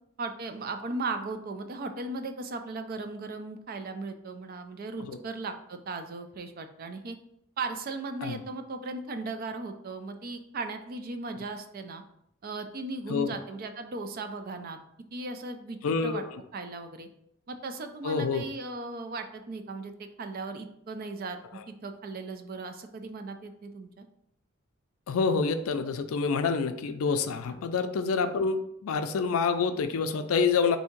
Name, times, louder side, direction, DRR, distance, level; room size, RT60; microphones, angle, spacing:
voice 1, 0.2-7.2 7.6-12.0 12.4-14.8 15.1-16.2 16.5-17.1 17.5-21.4 21.7-24.0, right 3 dB, 45° right, 7 dB, 0.4 m, -37 dB
voice 2, 15.8-16.3 18.0-18.4 25.1-30.8, left 5 dB, 80° left, 9 dB, 0.4 m, -27 dB
3.5 x 2.7 x 4.4 m, 0.76 s
head